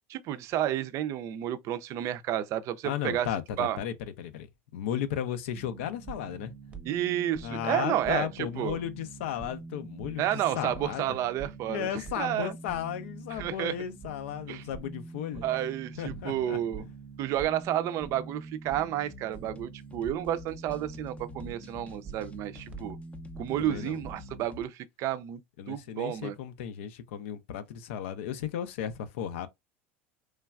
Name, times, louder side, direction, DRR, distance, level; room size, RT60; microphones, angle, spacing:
voice 1, 0.1-3.3 3.6-3.8 6.8-8.3 8.6-8.8 10.2-11.9 12.2-12.5 13.4-13.7 14.5-14.6 15.4-16.9 17.2-23.0 23.4-25.4 25.7-26.3, right 12 dB, 50° right, 0.4 m, -31 dB
voice 2, 2.8-4.5 4.7-6.5 7.4-11.2 11.7-15.5 16.0-16.9 23.6-24.0 25.6-29.5, left 10 dB, 80° left, 0.4 m, -35 dB
sound 1, 5.5-24.5, right 4 dB, 20° right, 0.7 m, -45 dB
sound 2, 19.1-24.6, left 6 dB, 20° left, 0.5 m, -49 dB
3.1 x 2.3 x 2.2 m
supercardioid pair, 110°, 7 cm